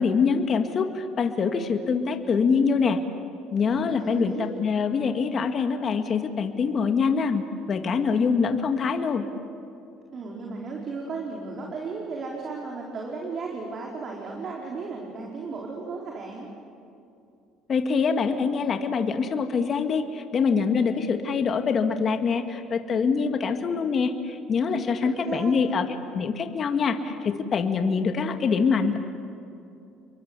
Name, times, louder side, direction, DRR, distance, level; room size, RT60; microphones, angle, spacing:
voice 1, 0.0-3.0 3.5-9.2 17.7-25.9 26.1-29.0, left 5 dB, 40° left, 6 dB, 2.0 m, -24 dB
voice 2, 3.7-4.5 10.1-16.5 24.9-25.5, right 4 dB, 45° right, -1 dB, 4.6 m, -35 dB
30.0 x 23.0 x 8.3 m, 2.6 s
supercardioid pair, 90°, 0 cm